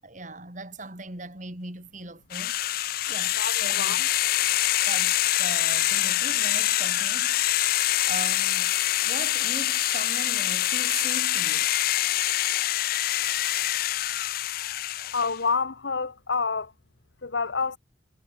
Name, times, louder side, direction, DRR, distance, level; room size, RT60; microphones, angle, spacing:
voice 1, 0.0-2.6 3.1-4.0 4.9-7.4 8.1-8.8 9.0-11.7 15.0-15.2, right 2 dB, 40° right, 5.0 m, -39 dB
sound 1, 2.3-15.4, left 14 dB, 50° left, 0.4 m, -25 dB
voice 2, 3.4-4.0 15.1-16.7 17.2-17.8, left 5 dB, 70° left, 1.0 m, -28 dB
head